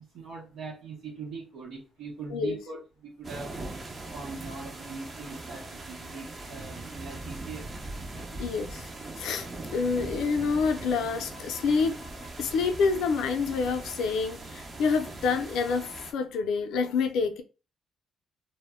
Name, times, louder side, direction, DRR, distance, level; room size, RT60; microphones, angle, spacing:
voice 1, 0.0-2.8 3.0-3.6 4.1-7.7 8.1-8.2, right 4 dB, 85° right, 0.8 m, -41 dB
sound 1, 3.2-16.1, right 2 dB, 35° right, 0.7 m, -41 dB
voice 2, 8.4-8.9 9.2-17.4, left 5 dB, 85° left, 0.4 m, -28 dB
2.1 x 2.1 x 3.5 m
cardioid pair, 90°, 0 cm